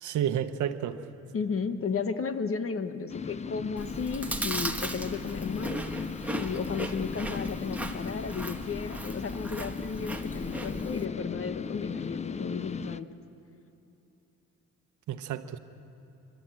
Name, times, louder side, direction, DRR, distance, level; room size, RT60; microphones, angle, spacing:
voice 1, 0.0-1.0 15.1-15.6, right 10 dB, 75° right, 10 dB, 1.0 m, -30 dB
voice 2, 1.3-5.8 6.3-13.1, left 5 dB, 45° left, 10 dB, 1.2 m, -34 dB
sound 1, 3.1-13.0, left 5 dB, 25° left, 0.5 m, -37 dB
Chewing mastication, 3.8-11.1, right 1 dB, 5° right, 1.3 m, -37 dB
30.0 x 12.0 x 7.6 m, 2.8 s
cardioid pair, 90°, 30 cm